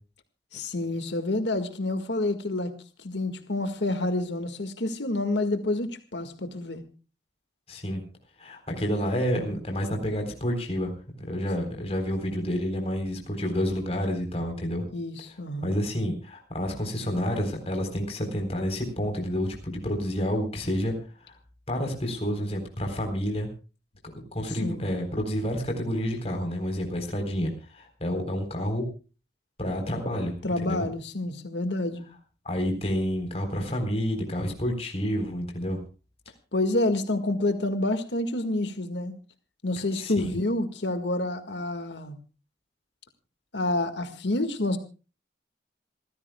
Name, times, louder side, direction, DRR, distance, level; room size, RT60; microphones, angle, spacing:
voice 1, 0.5-2.7 3.0-6.8 14.9-15.8 24.5-24.8 30.4-32.0 36.5-39.2 39.6-42.2 43.5-44.8, left 2 dB, 80° left, 7 dB, 1.9 m, -28 dB
voice 2, 7.7-8.0 8.4-10.9 11.3-14.8 15.6-20.9 21.2-21.3 21.7-23.5 24.3-28.8 29.6-30.3 30.6-30.9 32.4-35.8 40.0-40.3, equal, 35° left, 3 dB, 3.9 m, -29 dB
28.0 x 15.0 x 2.3 m, 0.35 s
head